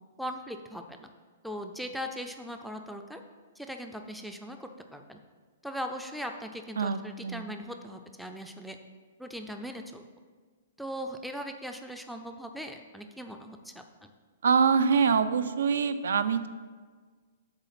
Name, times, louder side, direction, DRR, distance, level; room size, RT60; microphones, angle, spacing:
voice 1, 0.2-1.1 1.4-3.2 3.6-5.2 5.6-8.8 9.2-10.0 10.8-14.1, equal, ahead, 5 dB, 0.3 m, -39 dB
voice 2, 6.8-7.5 14.4-16.5, right 6 dB, 85° right, 12 dB, 0.4 m, -25 dB
8.1 x 3.3 x 5.7 m, 1.5 s
hypercardioid pair, 165°, 0 cm